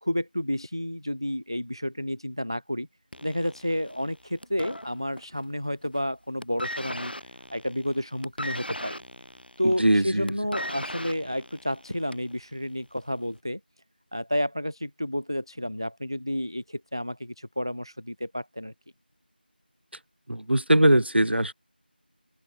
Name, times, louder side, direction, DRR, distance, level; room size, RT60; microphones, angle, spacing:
voice 1, 0.0-2.9 3.2-7.1 7.5-9.0 9.6-13.6 14.1-18.7, equal, 25° right, 0.4 m, -30 dB
sound 1, 3.1-5.5 5.7-6.1 6.4-12.4 13.2-13.3, equal, 65° left, 3.6 m, -38 dB
voice 2, 9.6-10.3 20.3-21.5, right 1 dB, 85° right, 0.7 m, -21 dB
figure-of-eight pair, 175°, 6 cm